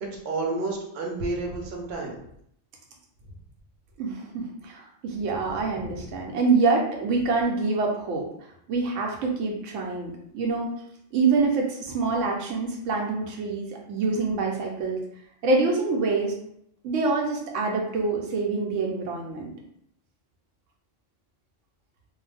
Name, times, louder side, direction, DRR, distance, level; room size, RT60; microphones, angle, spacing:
voice 1, 0.0-2.2 5.5-6.1, right 3 dB, 60° right, 0 dB, 0.9 m, -31 dB
voice 2, 4.0-8.2 8.7-10.7 11.1-15.0 15.4-16.3 16.8-19.5, right 4 dB, 90° right, 0 dB, 1.0 m, -26 dB
2.5 x 2.2 x 3.3 m, 0.72 s
omnidirectional pair, 1.2 m